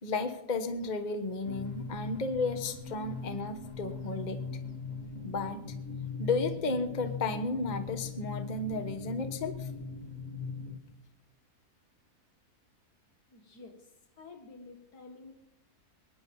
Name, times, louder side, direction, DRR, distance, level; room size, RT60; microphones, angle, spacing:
voice 1, 0.0-4.4 5.2-5.6 6.2-9.7, left 3 dB, 30° left, 8 dB, 1.3 m, -33 dB
sound 1, 1.4-10.8, left 4 dB, 55° left, 1.8 m, -40 dB
voice 2, 13.3-15.3, left 3 dB, 80° left, 5 dB, 2.4 m, -51 dB
22.5 x 10.0 x 5.5 m, 0.90 s
omnidirectional pair, 1.7 m